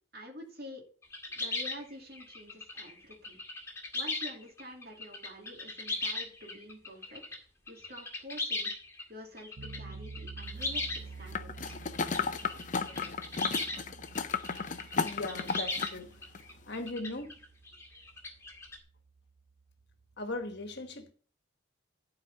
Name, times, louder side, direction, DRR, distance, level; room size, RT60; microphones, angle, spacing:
voice 1, 0.1-0.8 1.3-3.4 3.9-7.2 7.7-8.7 9.1-11.8, equal, 50° right, 2.8 m, -48 dB
sound 1, 1.0-7.4 7.7-9.0 9.4-11.3 11.7-13.8 14.1-18.7, left 2 dB, 15° left, 1.9 m, -37 dB
sound 2, 9.6-20.5, right 4 dB, 80° right, 0.7 m, -50 dB
sound 3, 11.3-16.0 16.3-16.4, left 5 dB, 35° left, 0.6 m, -34 dB
voice 2, 15.0-16.2 16.7-17.3 20.2-21.1, left 2 dB, 55° left, 1.4 m, -38 dB
11.5 x 4.9 x 5.4 m
head